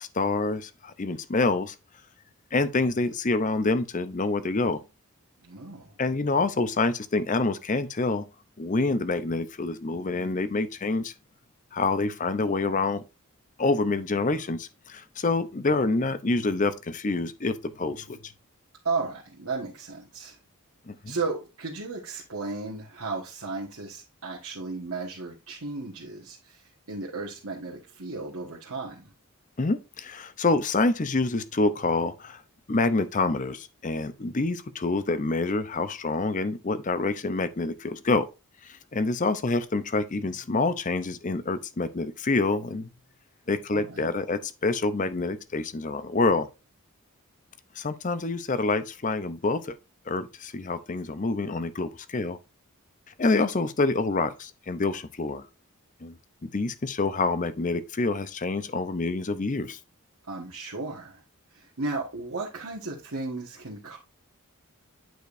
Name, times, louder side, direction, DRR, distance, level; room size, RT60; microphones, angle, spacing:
voice 1, 0.0-1.7 2.5-4.8 6.0-8.3 8.6-11.1 11.7-13.0 13.6-18.3 20.9-21.2 29.6-32.4 32.7-38.3 38.6-42.9 43.5-46.5 47.8-49.8 50.1-52.4 53.2-55.5 56.0-59.8, left 3 dB, 35° left, 0.6 m, -27 dB
voice 2, 5.4-5.9 18.8-20.4 21.1-29.0 43.7-44.1 60.3-61.2 61.5-64.0, right 3 dB, 70° right, 1.5 m, -34 dB
9.1 x 5.0 x 2.6 m
head